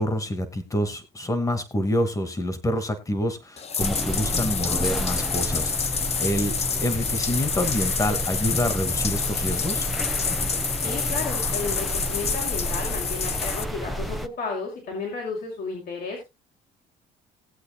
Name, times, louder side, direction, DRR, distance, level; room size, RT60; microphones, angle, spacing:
voice 1, 0.0-6.5 6.8-9.9, left 1 dB, 20° left, 10 dB, 2.4 m, -27 dB
Bathtub (filling or washing), 3.6-13.6, left 6 dB, 40° left, 1.1 m, -28 dB
sound 1, 3.8-14.3, equal, ahead, 1.0 m, -31 dB
voice 2, 10.8-16.2, left 4 dB, 65° left, -2 dB, 6.0 m, -33 dB
20.0 x 8.3 x 2.2 m, 0.24 s
cardioid pair, 110°, 17 cm